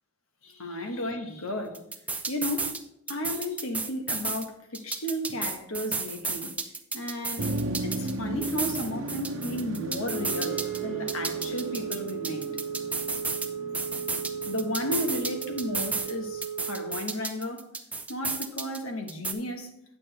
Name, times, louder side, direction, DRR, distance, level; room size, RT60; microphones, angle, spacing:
voice 1, 0.4-1.8 2.3-2.8 3.1-6.5 6.9-7.5 7.8-12.5 14.5-17.6 18.1-19.7, left 1 dB, 75° left, 1.3 m, -33 dB
sound 1, 1.7-2.8 3.1-4.5 4.7-8.1 8.4-10.8 11.1-13.5 13.7-16.1 16.4-18.8 19.1-19.3, right 4 dB, 5° right, 0.4 m, -32 dB
Motor vehicle (road), 7.4-16.4, right 2 dB, 70° right, 0.8 m, -36 dB
Wind instrument woodwind instrument, 10.0-17.1, right 8 dB, 45° left, 0.7 m, -35 dB
9.0 x 8.5 x 3.3 m
head